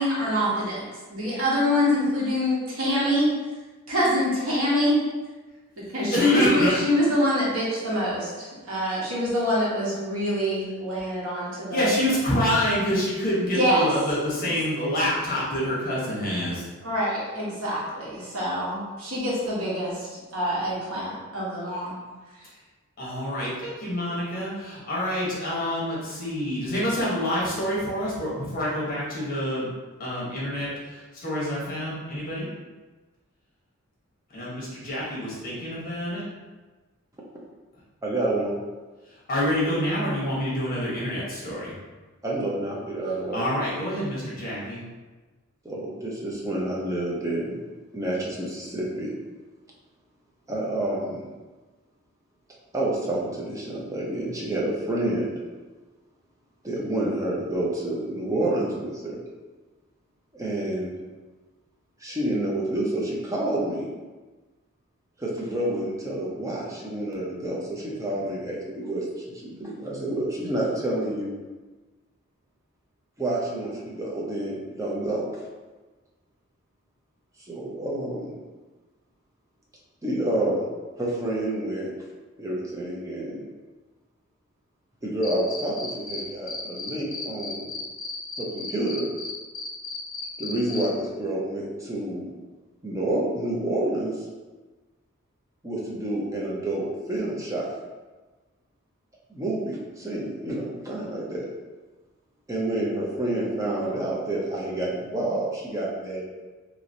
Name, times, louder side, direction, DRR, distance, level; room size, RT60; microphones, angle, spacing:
voice 1, 0.0-3.3 3.9-5.0 5.9-11.9 13.5-13.9 16.8-20.0 20.3-21.9, equal, 80° right, -6 dB, 1.1 m, -25 dB
voice 2, 6.1-6.8 11.7-16.6 23.0-29.7 30.0-32.5 34.3-36.2 39.3-41.8 43.3-44.8, equal, 45° left, -6 dB, 1.1 m, -27 dB
voice 3, 38.0-38.5 42.2-43.4 45.6-47.6 47.9-49.1 50.5-51.2 52.7-55.3 56.6-59.2 60.3-61.0 62.0-63.8 65.2-71.4 73.2-75.3 77.5-78.4 80.0-80.7 81.0-81.9 82.4-83.4 85.0-87.7 88.4-89.1 90.4-92.3 92.8-94.2 95.6-97.7 99.3-101.5 102.5-106.2, right 1 dB, 15° right, -4 dB, 0.6 m, -28 dB
Cricket, 85.2-86.2 86.5-90.8, left 4 dB, 65° left, 0.6 m, -34 dB
3.0 x 2.9 x 2.6 m, 1.3 s
head